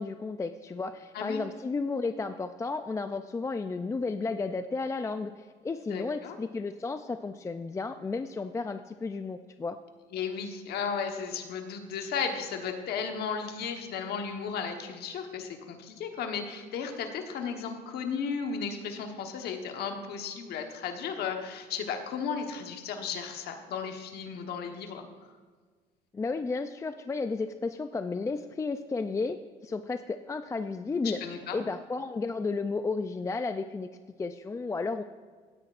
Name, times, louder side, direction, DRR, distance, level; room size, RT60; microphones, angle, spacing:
voice 1, 0.0-9.8 26.1-29.4 29.6-31.2 31.5-33.9 34.2-35.0, left 4 dB, 20° left, 9 dB, 0.4 m, -33 dB
voice 2, 1.1-1.4 5.9-6.4 10.1-25.3 31.0-31.6, left 6 dB, 70° left, 4 dB, 1.2 m, -35 dB
16.5 x 9.9 x 2.5 m, 1.5 s
cardioid pair, 110°, 17 cm